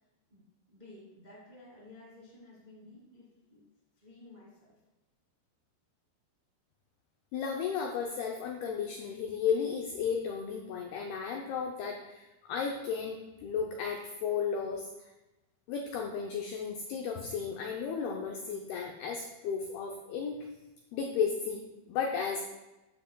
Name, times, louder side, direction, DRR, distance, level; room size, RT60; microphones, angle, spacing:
voice 1, 0.3-3.6 4.0-4.8, left 2 dB, 30° right, -6 dB, 0.9 m, -54 dB
voice 2, 7.3-15.1 15.7-20.5 20.9-22.4, left 6 dB, 85° left, 1 dB, 2.2 m, -34 dB
13.5 x 7.4 x 2.3 m, 1.0 s
omnidirectional pair, 5.4 m